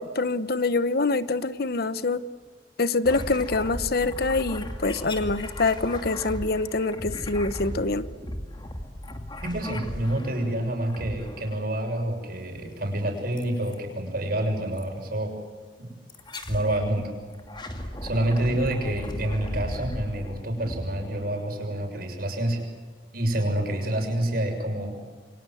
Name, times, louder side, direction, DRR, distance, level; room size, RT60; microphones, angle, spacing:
voice 1, 0.0-2.2 2.8-8.1, left 3 dB, 60° left, 15 dB, 1.0 m, -25 dB
sound 1, 3.1-10.5 10.9-11.7 13.4-13.8 14.8-14.9 16.1-16.9 17.3-21.7, left 1 dB, 25° left, 2.5 m, -36 dB
voice 2, 9.4-15.3 15.8-15.9 16.5-17.1 18.0-22.6 23.1-25.0, right 1 dB, 55° right, 3 dB, 6.7 m, -28 dB
29.0 x 23.5 x 7.8 m, 1.5 s
head